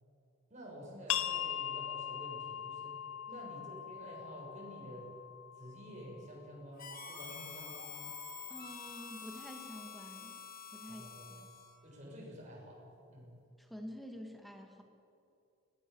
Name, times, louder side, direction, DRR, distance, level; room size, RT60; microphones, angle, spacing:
voice 1, 0.5-3.0 3.3-5.1 5.6-8.0 10.9-11.4 11.8-12.8 13.1-13.4, equal, 35° right, -3 dB, 7.1 m, -50 dB
sound 1, 1.1-6.5, left 10 dB, 85° left, 0.9 m, -40 dB
Harmonica, 6.8-11.8, left 7 dB, 40° left, 1.8 m, -48 dB
sound 2, 6.9-10.7, right 4 dB, 55° right, 5.0 m, -56 dB
voice 2, 8.5-10.4 10.7-11.1 11.4-11.5 13.6-14.8, equal, ahead, 2 dB, 2.2 m, -48 dB
22.0 x 19.0 x 7.2 m, 2.6 s
head